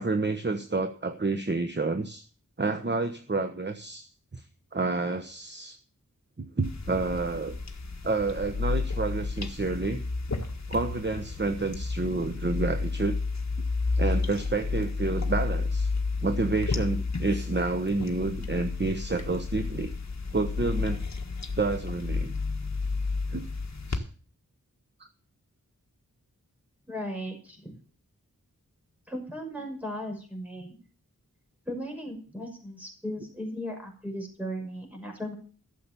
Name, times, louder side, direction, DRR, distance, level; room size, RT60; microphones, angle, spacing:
voice 1, 0.0-2.2 2.6-4.4 4.7-5.8 6.4-7.5 8.0-10.0 10.7-13.2 14.0-15.9 16.2-19.9 20.3-21.0 21.6-22.3 23.3-23.4 23.9-24.0, right 3 dB, 35° right, 7 dB, 1.1 m, -29 dB
sound 1, 6.6-24.0, left 4 dB, 55° left, 1.7 m, -31 dB
voice 2, 26.9-27.7 29.1-30.8 31.7-35.3, equal, 5° right, 1 dB, 6.1 m, -36 dB
13.5 x 7.5 x 7.0 m, 0.41 s
wide cardioid pair, 65°, 33 cm